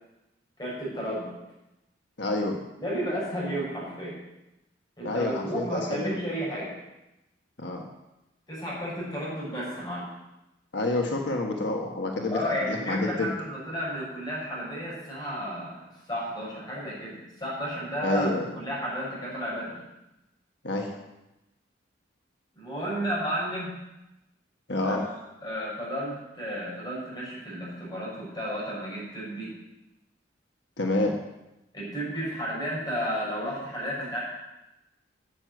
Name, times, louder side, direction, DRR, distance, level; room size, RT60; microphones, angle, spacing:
voice 1, 0.6-1.3 2.8-4.2 5.0-6.7 8.5-10.1 12.3-18.3 18.5-19.8 22.5-23.8 24.8-25.0 25.4-29.5 31.7-34.2, equal, 20° left, -6 dB, 5.6 m, -32 dB
voice 2, 2.2-2.6 5.0-6.1 7.6-7.8 10.7-13.3 18.0-18.5 20.6-21.0 24.7-25.0 30.8-31.2, left 2 dB, 65° left, 2 dB, 1.4 m, -28 dB
9.9 x 7.7 x 8.0 m, 0.95 s
head